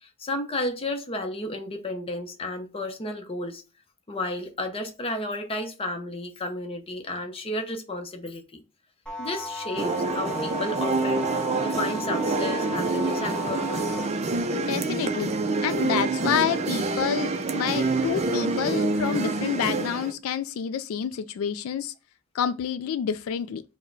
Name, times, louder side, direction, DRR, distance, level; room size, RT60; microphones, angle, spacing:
voice 1, 0.0-3.6 4.1-8.6 9.2-11.3 11.5-14.0, left 1 dB, 30° left, 0.7 m, -32 dB
sound 1, 9.1-14.1, left 2 dB, 5° left, 1.0 m, -35 dB
sound 2, 9.8-20.1, right 3 dB, 30° right, 0.4 m, -27 dB
voice 2, 14.5-15.3 15.6-21.9 22.3-23.6, left 8 dB, 80° left, 0.3 m, -28 dB
4.6 x 2.2 x 4.5 m
head